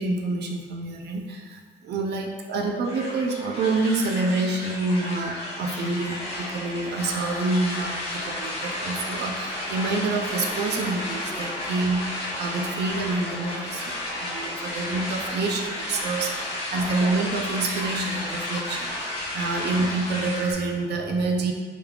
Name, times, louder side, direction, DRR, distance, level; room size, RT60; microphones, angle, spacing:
voice 1, 0.0-21.5, right 3 dB, 60° right, 3 dB, 0.5 m, -27 dB
sound 1, 2.8-20.5, left 1 dB, 30° left, 1.0 m, -32 dB
3.4 x 3.1 x 2.3 m, 1.5 s
cardioid pair, 90°, 20 cm